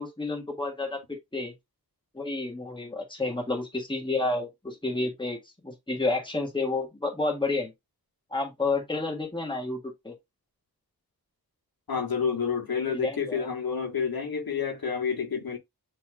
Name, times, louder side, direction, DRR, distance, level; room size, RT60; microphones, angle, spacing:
voice 1, 0.0-1.5 2.1-7.7 8.3-10.2 12.9-13.4, left 3 dB, 15° left, 1.6 m, -30 dB
voice 2, 11.9-15.6, left 6 dB, 70° left, 1.5 m, -29 dB
6.8 x 3.2 x 2.3 m
wide cardioid pair, 75°, 37 cm